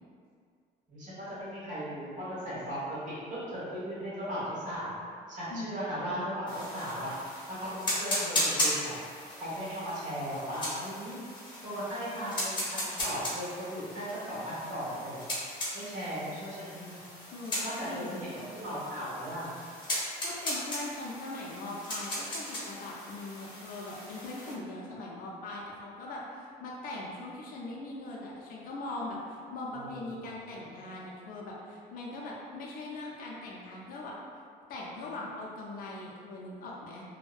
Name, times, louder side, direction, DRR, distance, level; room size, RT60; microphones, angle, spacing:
voice 1, 0.9-5.0 5.3-7.2 7.5-9.0 9.4-11.2 11.6-15.3 15.7-17.0 17.6-19.5 29.7-29.9 30.5-30.7, equal, 50° right, -9 dB, 1.2 m, -37 dB
voice 2, 5.5-6.4 17.3-18.4 19.9-34.1 34.7-37.0, left 2 dB, 60° left, -3 dB, 0.5 m, -41 dB
sound 1, 6.5-24.5, left 1 dB, 25° left, 0.8 m, -37 dB
2.6 x 2.1 x 2.3 m, 2.2 s
cardioid pair, 110°, 17 cm